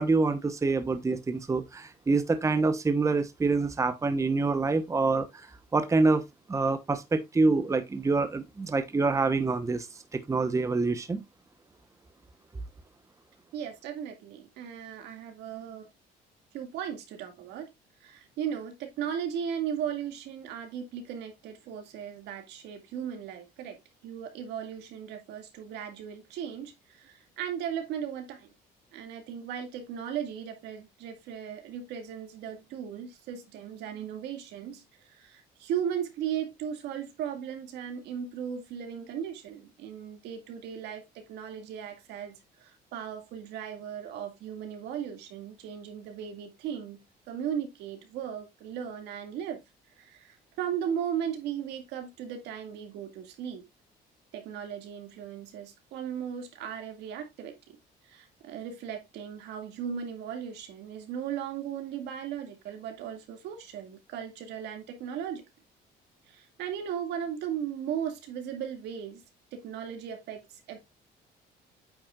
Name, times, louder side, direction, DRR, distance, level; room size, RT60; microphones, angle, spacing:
voice 1, 0.0-6.2 6.5-9.9 10.3-11.2, right 3 dB, 20° right, 0.9 m, -26 dB
voice 2, 13.5-15.9 16.5-17.7 18.0-23.8 24.0-28.5 28.9-47.0 47.3-49.6 50.0-53.6 54.3-57.8 58.0-65.4 66.3-69.2 69.5-70.8, right 8 dB, 85° right, 2.2 m, -37 dB
8.8 x 5.9 x 2.4 m
cardioid pair, 110°, 17 cm